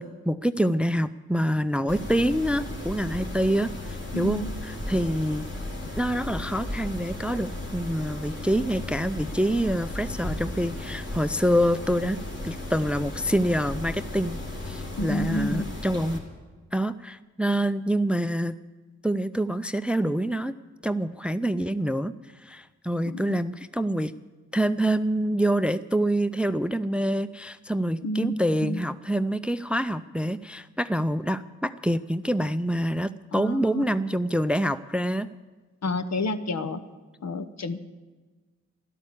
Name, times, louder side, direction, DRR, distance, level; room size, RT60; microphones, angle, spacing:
voice 1, 0.0-5.5 6.0-12.2 12.4-14.4 14.7-16.2 16.7-18.5 19.0-20.5 20.8-22.1 22.4-24.1 24.5-35.3, equal, 5° right, 13 dB, 0.4 m, -26 dB
Mechanisms, 1.9-16.2, left 2 dB, 40° left, 3.5 m, -35 dB
voice 2, 4.1-4.5 15.0-15.7 23.0-23.4 28.0-28.4 28.6-28.8 33.3-33.9 35.8-36.8 37.2-37.9, left 1 dB, 65° left, 8 dB, 1.0 m, -30 dB
13.0 x 12.0 x 8.5 m, 1.3 s
wide cardioid pair, 85°, 29 cm